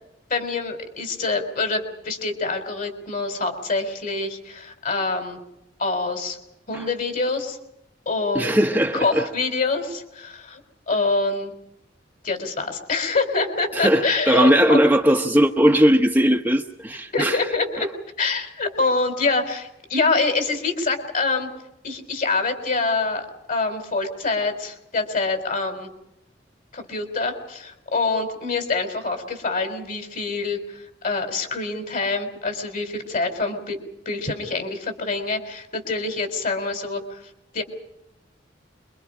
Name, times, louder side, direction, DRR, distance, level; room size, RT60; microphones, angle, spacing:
voice 1, 0.3-5.4 5.8-6.4 6.7-7.6 8.1-8.5 8.9-10.6 10.9-11.5 12.2-14.8 17.1-17.9 18.2-21.5 21.8-25.9 26.7-33.8 34.1-37.2 37.5-37.6, left 3 dB, 50° left, 4.0 m, -25 dB
voice 2, 8.3-9.2 13.7-17.4, equal, 10° right, 1.0 m, -18 dB
27.0 x 23.5 x 5.0 m
head